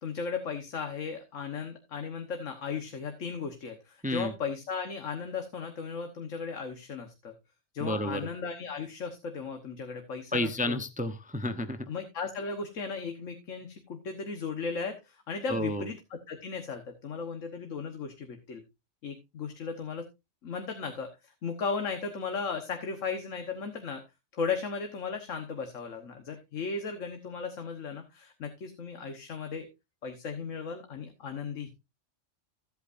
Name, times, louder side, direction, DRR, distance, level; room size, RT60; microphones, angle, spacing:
voice 1, 0.0-7.3 7.7-10.8 11.9-18.6 19.0-20.0 20.4-24.0 24.3-29.7 30.0-31.7, left 5 dB, 85° left, 6 dB, 1.6 m, -36 dB
voice 2, 7.8-8.2 10.3-11.9 15.5-15.9, left 1 dB, 10° right, 9 dB, 0.7 m, -31 dB
15.0 x 8.3 x 2.5 m, 0.24 s
omnidirectional pair, 1.3 m